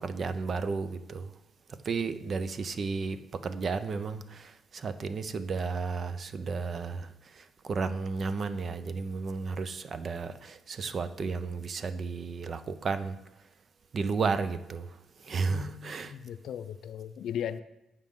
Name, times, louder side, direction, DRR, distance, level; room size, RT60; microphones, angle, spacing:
voice 1, 0.0-1.3 1.7-13.2 13.9-16.1, right 4 dB, 45° right, 0.5 m, -33 dB
voice 2, 15.5-17.6, left 9 dB, 70° left, 0.4 m, -37 dB
9.2 x 5.2 x 3.6 m
cardioid pair, 90°, 0 cm